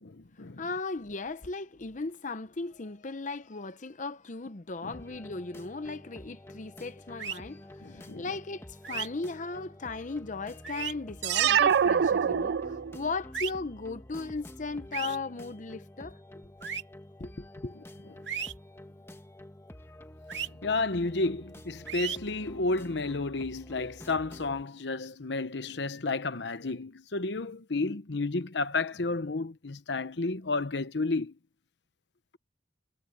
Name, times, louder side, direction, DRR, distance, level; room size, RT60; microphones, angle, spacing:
voice 1, 0.0-0.6 4.8-4.9 7.8-8.2 20.4-31.3, left 3 dB, 70° left, 1.0 m, -32 dB
voice 2, 0.6-16.2 17.2-17.8, left 3 dB, 45° left, 0.8 m, -37 dB
sound 1, 4.9-24.6, left 1 dB, 15° left, 1.2 m, -49 dB
sound 2, 7.2-7.4 8.8-9.1 10.6-10.9 13.3-13.5 14.9-15.2 16.6-16.8 18.3-18.5 20.3-20.5 21.9-22.2, right 8 dB, 85° right, 2.5 m, -34 dB
sound 3, 11.2-13.1, right 8 dB, 65° right, 0.3 m, -24 dB
head